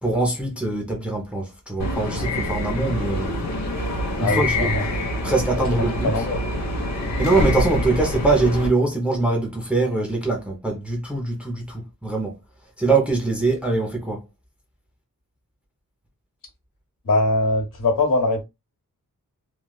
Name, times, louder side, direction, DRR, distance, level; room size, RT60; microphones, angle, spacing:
voice 1, 0.0-3.3 4.2-4.7 5.2-6.1 7.2-12.3 12.8-14.2, right 3 dB, 5° right, 0.6 m, -23 dB
sound 1, 1.8-8.7, left 1 dB, 55° left, 1.0 m, -26 dB
voice 2, 4.2-4.9 6.0-6.4 17.0-18.4, left 2 dB, 70° left, 1.3 m, -21 dB
3.2 x 2.3 x 2.3 m
wide cardioid pair, 160°, 33 cm